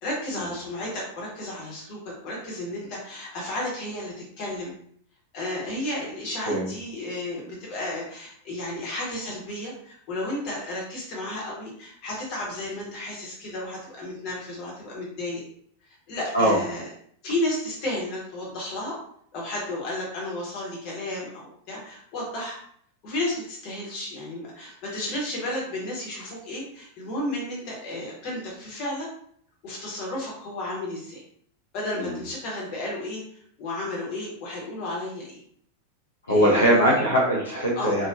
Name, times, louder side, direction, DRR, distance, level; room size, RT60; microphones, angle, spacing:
voice 1, 0.0-4.7 5.3-15.4 15.9-16.9 17.2-18.9 19.3-22.6 23.0-29.1 29.6-31.2 31.7-35.4 36.3-36.8 37.7-38.0, left 1 dB, 40° left, -3 dB, 1.3 m, -33 dB
voice 2, 36.3-38.1, equal, 70° left, -3 dB, 1.0 m, -21 dB
3.1 x 2.4 x 2.6 m, 0.64 s
figure-of-eight pair, 90°, 0 cm